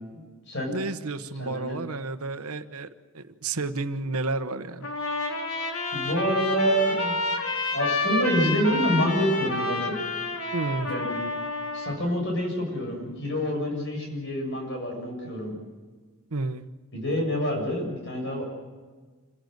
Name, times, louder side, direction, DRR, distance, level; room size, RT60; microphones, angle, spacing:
voice 1, 0.1-0.7 1.4-1.8 5.9-7.1 7.7-10.0 10.9-11.2 11.7-15.6 16.9-18.4, equal, 55° left, 1 dB, 7.2 m, -27 dB
voice 2, 0.7-2.9 3.1-4.9 10.5-10.9 16.3-16.7, right 3 dB, 80° right, 10 dB, 1.1 m, -31 dB
Trumpet, 4.8-12.0, left 2 dB, 90° left, 4.0 m, -29 dB
27.5 x 17.0 x 7.9 m, 1.4 s
head